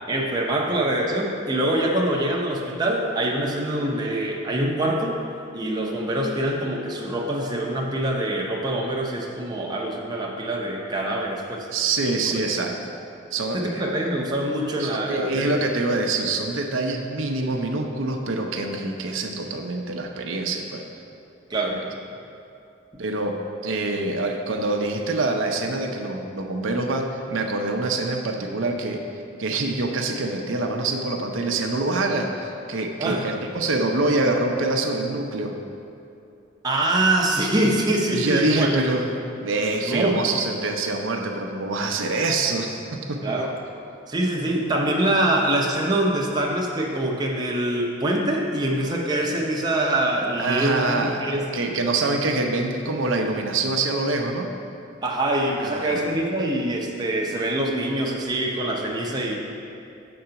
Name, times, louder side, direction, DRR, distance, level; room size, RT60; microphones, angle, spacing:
voice 1, 0.1-5.2 5.5-11.7 13.5-15.5 21.5-21.8 33.0-33.3 36.6-38.8 39.8-40.2 43.2-43.5 44.1-51.5 55.0-59.4, right 1 dB, 20° right, -1 dB, 0.7 m, -24 dB
voice 2, 11.7-12.9 13.3-13.8 14.8-20.8 21.5-21.6 23.0-29.0 29.4-35.5 38.1-43.4 50.4-54.5 55.6-56.1, right 2 dB, 80° right, 2 dB, 0.6 m, -25 dB
7.7 x 3.9 x 5.7 m, 2.7 s
head